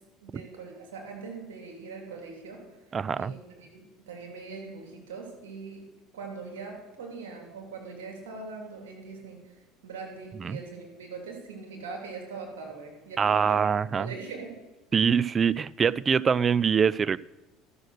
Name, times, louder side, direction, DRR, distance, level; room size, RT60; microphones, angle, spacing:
voice 1, 0.2-2.7 3.2-5.9 6.1-13.7 14.0-14.6, right 4 dB, 85° right, 1 dB, 2.7 m, -41 dB
voice 2, 2.9-3.3 10.4-10.6 13.2-14.1 14.9-17.2, right 6 dB, 35° right, 21 dB, 0.3 m, -24 dB
12.5 x 6.5 x 6.4 m, 1.1 s
hypercardioid pair, 75°, 0 cm